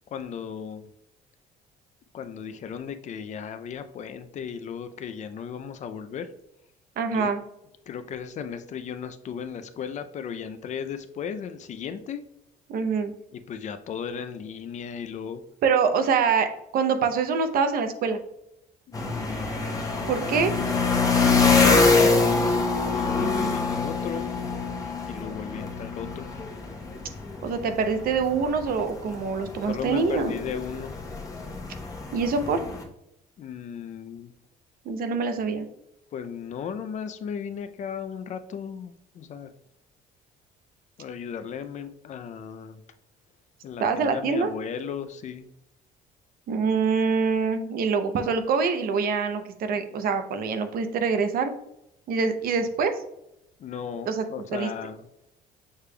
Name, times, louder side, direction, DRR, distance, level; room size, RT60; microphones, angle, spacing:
voice 1, 0.1-0.9 2.1-6.3 7.1-7.3 7.9-12.2 13.3-15.4 18.9-19.6 21.3-22.4 22.9-24.3 25.1-26.3 29.7-31.0 33.4-34.3 36.1-39.5 41.0-42.8 43.6-45.5 53.6-55.0, left 7 dB, 45° left, 10 dB, 0.4 m, -36 dB
voice 2, 7.0-7.4 12.7-13.1 15.6-18.2 20.1-20.5 23.2-23.7 27.4-30.3 32.1-32.6 34.9-35.7 43.8-44.5 46.5-51.5 52.1-52.9 54.0-54.2 54.5-54.7, right 5 dB, 60° right, 8 dB, 0.6 m, -25 dB
sound 1, 18.9-32.8, left 4 dB, 20° left, 0.9 m, -25 dB
6.5 x 3.3 x 2.2 m, 0.82 s
cardioid pair, 110°, 17 cm